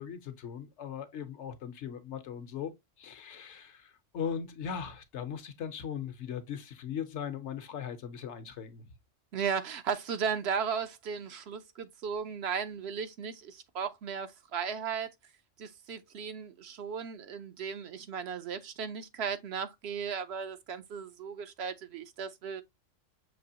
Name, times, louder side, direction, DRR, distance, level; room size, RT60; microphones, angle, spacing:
voice 1, 0.0-8.9, left 8 dB, 70° left, 1.0 m, -39 dB
voice 2, 9.3-15.1 15.6-22.6, right 6 dB, 65° right, 0.8 m, -36 dB
6.1 x 2.9 x 2.7 m
omnidirectional pair, 1.3 m